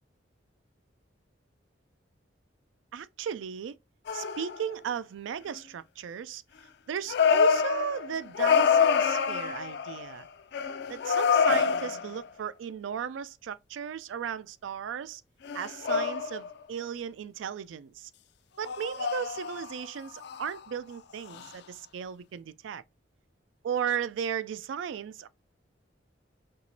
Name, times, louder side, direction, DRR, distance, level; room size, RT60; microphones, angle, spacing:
voice 1, 2.9-3.8 4.1-6.4 6.9-10.3 10.9-15.2 15.5-18.1 18.6-22.8 23.6-25.3, right 8 dB, 90° right, 0.3 m, -35 dB
sound 1, 4.1-4.7 7.1-10.2 10.5-12.3 15.4-16.5 18.7-19.9 20.2-20.6 21.3-21.5, left 6 dB, 60° left, 0.4 m, -26 dB
4.6 x 2.9 x 2.6 m
head